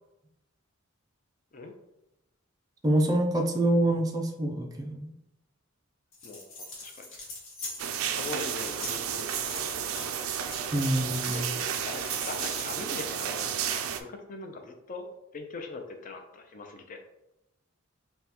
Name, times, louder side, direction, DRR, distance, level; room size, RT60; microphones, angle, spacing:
voice 1, 2.8-5.1 10.7-11.5, right 1 dB, 20° right, 1 dB, 0.4 m, -26 dB
sound 1, 6.1-13.1, left 2 dB, 65° left, 1.3 m, -43 dB
voice 2, 6.8-7.2 8.1-9.5 10.7-10.9 11.2-15.1 15.3-17.0, left 3 dB, 40° left, 4 dB, 0.5 m, -41 dB
sound 2, 7.8-14.0, right 8 dB, 80° right, 0.4 m, -32 dB
5.3 x 2.3 x 2.9 m, 0.90 s
head